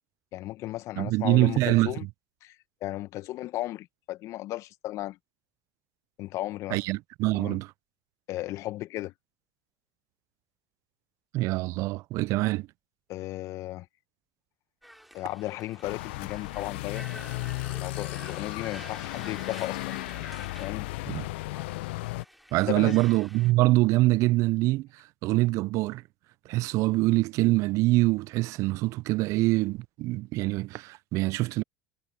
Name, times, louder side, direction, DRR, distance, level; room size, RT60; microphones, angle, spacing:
voice 1, 0.3-2.1 2.4-2.6 2.8-5.2 6.2-6.8 7.3-7.6 8.3-9.1 13.1-13.9 15.1-17.0 17.8-19.9 20.6-20.9 22.7-23.0, left 16 dB, 55° left, 1.8 m, -35 dB
voice 2, 1.0-1.9 6.7-7.7 11.3-12.7 21.1-21.2 22.5-26.0 26.5-31.6, right 20 dB, 55° right, 0.7 m, -25 dB
sound 1, 14.8-23.5, equal, ahead, 3.4 m, -49 dB
sound 2, 15.8-22.3, left 21 dB, 70° left, 1.0 m, -35 dB
hypercardioid pair, 70°, 6 cm